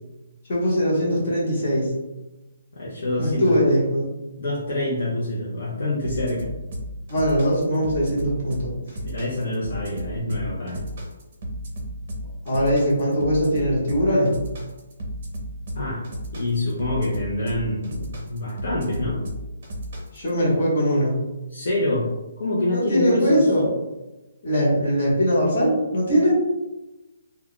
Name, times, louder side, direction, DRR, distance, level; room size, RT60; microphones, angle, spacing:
voice 1, 0.5-1.9 3.2-4.1 7.1-9.0 12.4-14.3 20.1-21.1 22.7-23.7 24.4-26.3, equal, 35° left, -5 dB, 1.0 m, -21 dB
voice 2, 2.8-3.6 4.4-6.5 9.0-10.9 15.8-16.0 16.3-19.2 21.5-22.1 22.4-23.5, left 1 dB, 50° left, -6 dB, 0.6 m, -26 dB
sound 1, 6.0-20.3, equal, 35° right, 0.7 m, -33 dB
2.3 x 2.2 x 3.6 m, 1.0 s
hypercardioid pair, 180°, 0 cm